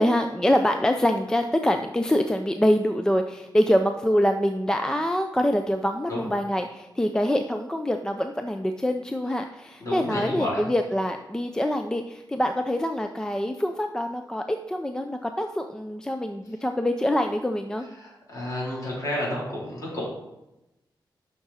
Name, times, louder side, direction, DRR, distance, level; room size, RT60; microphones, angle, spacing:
voice 1, 0.0-17.9, equal, 10° left, 6 dB, 0.4 m, -25 dB
voice 2, 9.8-10.7 17.9-20.0, left 1 dB, 40° left, -5 dB, 3.5 m, -31 dB
11.0 x 5.9 x 4.2 m, 0.94 s
wide cardioid pair, 180°, 8 cm